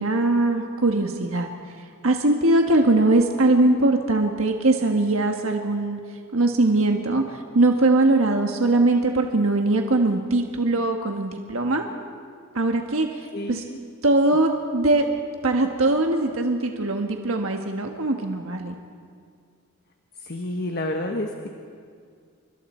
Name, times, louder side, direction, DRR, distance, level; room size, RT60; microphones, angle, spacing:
voice 1, 0.0-1.5 2.0-6.0 6.3-11.8 12.5-13.6 14.0-15.1 15.4-18.7, right 2 dB, 70° right, 3 dB, 1.4 m, -21 dB
voice 2, 13.3-13.8 20.2-21.5, left 1 dB, 45° left, 3 dB, 1.3 m, -29 dB
28.5 x 25.0 x 4.4 m, 2.2 s
head